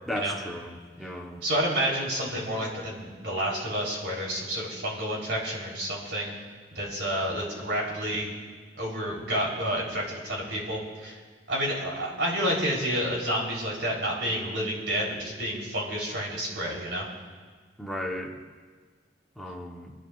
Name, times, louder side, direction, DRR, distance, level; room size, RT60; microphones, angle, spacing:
voice 1, 0.1-1.4 17.8-18.4 19.4-19.9, left 1 dB, ahead, -1 dB, 1.2 m, -35 dB
voice 2, 1.4-6.3 6.7-8.3 8.8-11.2 11.5-17.1, equal, 75° right, -3 dB, 4.1 m, -29 dB
26.0 x 12.0 x 2.6 m, 1.5 s
head